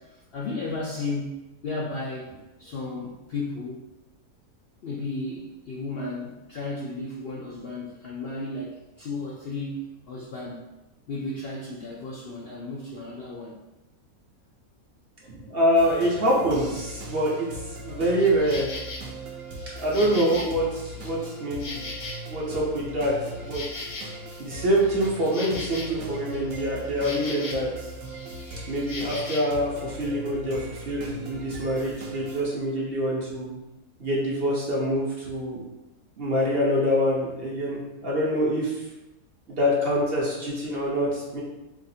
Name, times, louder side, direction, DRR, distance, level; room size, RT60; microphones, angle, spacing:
voice 1, 0.0-3.8 4.8-10.6 11.1-13.6, left 2 dB, 65° left, -4 dB, 0.6 m, -34 dB
voice 2, 15.3-17.5 17.8-18.7 19.8-21.8 22.3-23.6 24.4-27.7 28.7-33.6 34.0-35.6 36.2-38.8 39.5-41.4, equal, 50° right, -5 dB, 0.9 m, -25 dB
sound 1, 15.7-32.4, right 1 dB, 70° right, 1.1 m, -39 dB
Insect, 18.2-19.0 19.5-22.6 22.9-27.8 28.0-29.6, left 3 dB, 85° left, 1.2 m, -39 dB
4.8 x 2.4 x 2.7 m, 1.0 s
omnidirectional pair, 1.5 m